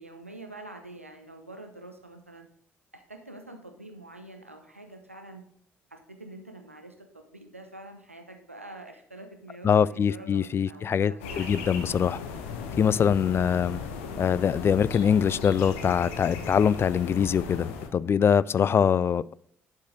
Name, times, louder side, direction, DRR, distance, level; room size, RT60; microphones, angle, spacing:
voice 1, 0.0-2.5 2.9-5.4 5.9-11.6 18.6-18.8, right 2 dB, 90° right, 0.8 m, -46 dB
voice 2, 9.6-12.2 12.8-13.8 14.2-19.3, left 7 dB, 35° left, 0.3 m, -23 dB
sound 1, 11.2-17.9, left 5 dB, 70° left, 1.0 m, -37 dB
11.5 x 4.6 x 3.7 m
figure-of-eight pair, 45°, 7 cm